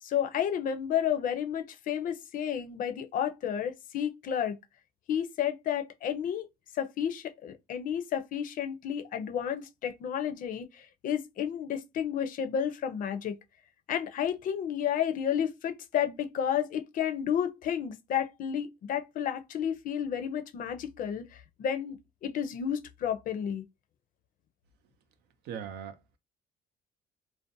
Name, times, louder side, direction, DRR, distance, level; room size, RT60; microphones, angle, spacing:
voice 1, 0.0-4.6 5.1-6.5 6.7-13.4 13.9-22.0 22.2-23.6, left 9 dB, 55° left, 0.4 m, -31 dB
voice 2, 25.5-26.2, right 8 dB, 75° right, 0.5 m, -40 dB
2.5 x 2.1 x 2.5 m
cardioid pair, 110°, 17 cm